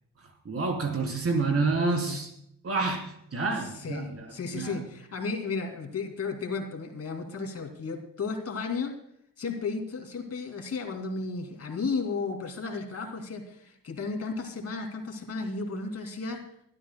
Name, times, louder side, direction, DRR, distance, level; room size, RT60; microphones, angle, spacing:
voice 1, 0.4-2.3 2.6-3.1 3.3-4.3 4.5-4.8, right 3 dB, 45° right, 3 dB, 3.3 m, -28 dB
voice 2, 3.6-8.9 9.4-16.5, left 4 dB, 50° left, 4 dB, 2.6 m, -34 dB
25.0 x 13.0 x 2.2 m, 0.70 s
wide cardioid pair, 170°, 33 cm